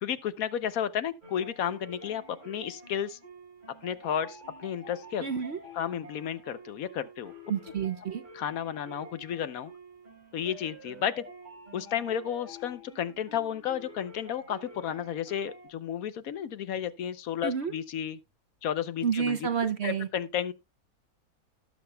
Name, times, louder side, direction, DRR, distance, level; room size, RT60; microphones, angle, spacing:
voice 1, 0.0-3.2 3.8-5.3 5.7-7.3 8.3-9.7 10.3-11.2 11.7-18.2 18.6-20.5, left 9 dB, 70° left, 1.1 m, -32 dB
sound 1, 1.2-15.7, right 1 dB, 30° right, 4.9 m, -49 dB
voice 2, 5.2-5.6 7.5-8.2 17.4-17.7 19.0-20.1, right 7 dB, 55° right, 0.8 m, -29 dB
18.5 x 7.3 x 2.2 m
omnidirectional pair, 1.6 m